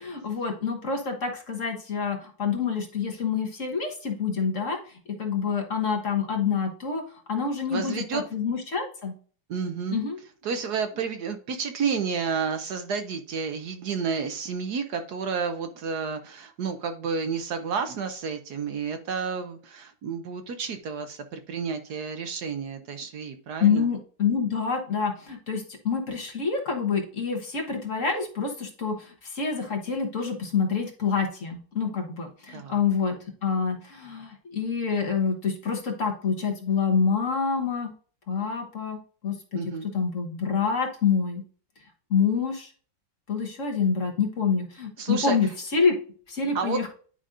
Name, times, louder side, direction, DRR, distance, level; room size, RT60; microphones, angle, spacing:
voice 1, 0.0-9.1 9.9-10.2 23.6-37.9 38.3-41.4 42.1-42.7 43.3-46.0 46.3-46.9, left 5 dB, 45° left, 3 dB, 1.4 m, -27 dB
voice 2, 7.7-8.2 9.5-10.0 10.4-23.9 32.5-32.8 39.5-39.9 45.0-45.4 46.5-46.8, right 5 dB, 65° right, 8 dB, 1.2 m, -31 dB
10.0 x 5.1 x 2.5 m, 0.42 s
omnidirectional pair, 2.0 m